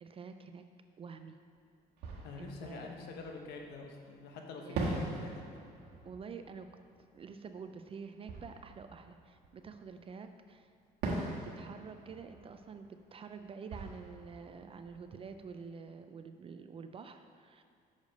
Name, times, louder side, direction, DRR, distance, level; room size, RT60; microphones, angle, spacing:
voice 1, 0.0-0.6 1.0-1.4 2.4-2.9 4.6-5.2 6.0-6.7 7.1-10.7 11.4-17.6, right 5 dB, 35° right, 8 dB, 0.3 m, -48 dB
Fireworks, 1.4-1.5 2.0-3.9 4.7-10.1 11.0-15.8, right 2 dB, 80° right, 1.4 m, -42 dB
voice 2, 2.2-5.6, left 4 dB, 75° left, 2 dB, 1.0 m, -46 dB
6.5 x 5.2 x 5.2 m, 2.3 s
cardioid pair, 110°, 17 cm